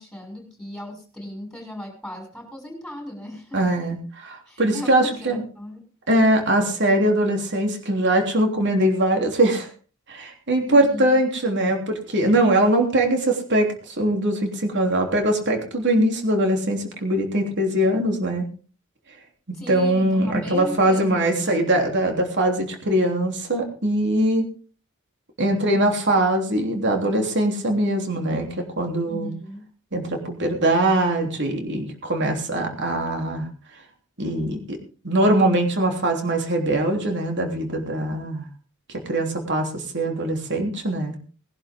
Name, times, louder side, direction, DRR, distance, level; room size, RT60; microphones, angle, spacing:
voice 1, 0.0-3.6 4.5-5.8 10.7-11.1 19.5-21.6 29.1-29.6, left 1 dB, ahead, 2 dB, 6.3 m, -36 dB
voice 2, 3.5-5.4 6.1-9.7 10.1-18.5 19.5-24.5 25.4-29.3 29.9-33.5 34.2-34.8 35.0-38.4 38.9-41.1, right 1 dB, 55° right, 3 dB, 3.3 m, -22 dB
20.0 x 11.5 x 3.7 m, 0.38 s
head